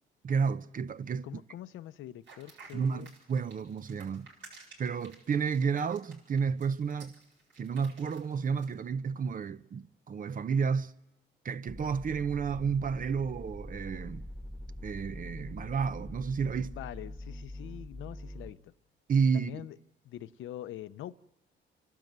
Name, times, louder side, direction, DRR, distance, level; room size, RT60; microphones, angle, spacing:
voice 1, 0.2-1.3 2.7-4.3 4.8-7.1 7.6-10.9 11.4-14.3 14.8-16.8 19.1-19.7, right 6 dB, 45° right, 0.7 m, -31 dB
voice 2, 1.2-3.1 16.6-18.7 19.3-19.8 20.0-21.2, left 13 dB, 80° left, 0.7 m, -44 dB
sound 1, 2.2-8.7, right 4 dB, 75° right, 7.4 m, -54 dB
sound 2, 11.7-18.5, left 1 dB, 5° right, 1.5 m, -44 dB
30.0 x 12.5 x 8.0 m
cardioid pair, 90°, 20 cm